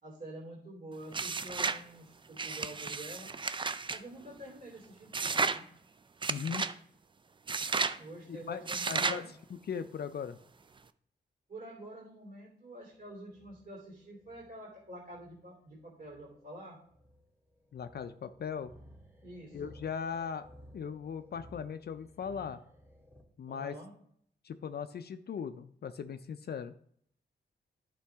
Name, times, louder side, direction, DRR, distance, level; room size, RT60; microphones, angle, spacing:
voice 1, 0.0-3.3 3.9-5.7 7.9-9.3 11.5-16.8 19.2-19.6 23.5-23.9, right 1 dB, 50° right, -3 dB, 3.0 m, -47 dB
sound 1, 1.1-1.8 2.4-4.0 5.1-5.6 6.2-6.7 7.5-8.0 8.7-9.2, right 4 dB, 25° right, 0.4 m, -33 dB
voice 2, 6.3-6.7 8.3-8.6 8.9-9.2 9.5-10.4 17.7-18.7 19.5-20.5 20.7-22.6 23.4-23.8 24.4-26.7, left 7 dB, 60° left, 10 dB, 0.5 m, -38 dB
sound 2, 12.8-23.2, equal, 10° right, 1.9 m, -57 dB
11.0 x 5.8 x 3.5 m, 0.65 s
wide cardioid pair, 100°, 18 cm